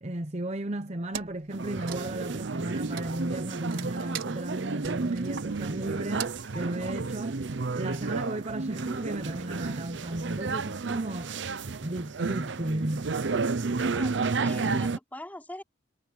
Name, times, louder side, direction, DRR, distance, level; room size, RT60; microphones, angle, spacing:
voice 1, 0.0-7.4 7.7-11.3 11.8-13.1, right 1 dB, 35° right, 1.0 m, -34 dB
Wood, 1.1-1.5 1.8-7.3, right 8 dB, 85° right, 5.4 m, -42 dB
sound 1, 1.5-15.0, right 4 dB, 65° right, 0.7 m, -32 dB
voice 2, 13.9-15.6, left 1 dB, 10° left, 4.1 m, -42 dB
head